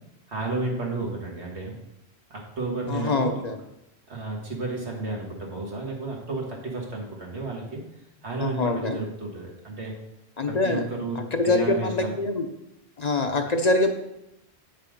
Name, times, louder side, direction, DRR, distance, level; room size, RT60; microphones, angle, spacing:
voice 1, 0.3-1.7 2.3-3.4 4.1-7.8 8.2-9.9 10.5-12.1, right 3 dB, 90° right, -1 dB, 2.0 m, -32 dB
voice 2, 2.9-3.6 8.4-9.0 10.4-10.8 11.3-12.5 13.0-13.9, left 2 dB, 45° left, 5 dB, 0.7 m, -24 dB
7.6 x 5.6 x 5.1 m, 0.86 s
omnidirectional pair, 1.1 m